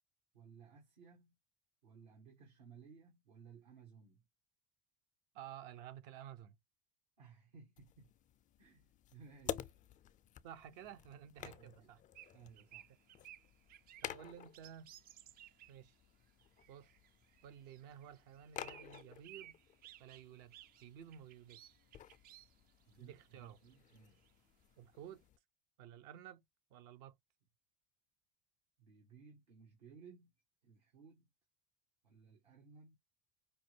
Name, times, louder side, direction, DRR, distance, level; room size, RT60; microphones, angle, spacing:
voice 1, 0.3-1.3 1.8-4.2 7.2-8.1 8.6-9.8 11.4-11.9 12.3-12.9 22.9-24.3 28.8-30.3 30.6-31.3 32.0-33.0, right 6 dB, 90° right, 1.6 m, -59 dB
voice 2, 5.3-6.6 10.4-12.0 14.0-14.9 15.7-16.0 16.7-16.9 17.4-19.6 20.0-20.5 20.8-21.8 23.0-23.6 24.8-25.2 25.8-26.4 26.7-27.2, right 10 dB, 75° right, 0.8 m, -53 dB
sound 1, 7.8-25.4, left 10 dB, 40° left, 0.4 m, -52 dB
sound 2, 12.1-15.8 16.2-24.3, right 13 dB, 45° right, 0.4 m, -59 dB
5.2 x 2.2 x 3.2 m
hypercardioid pair, 80°, 21 cm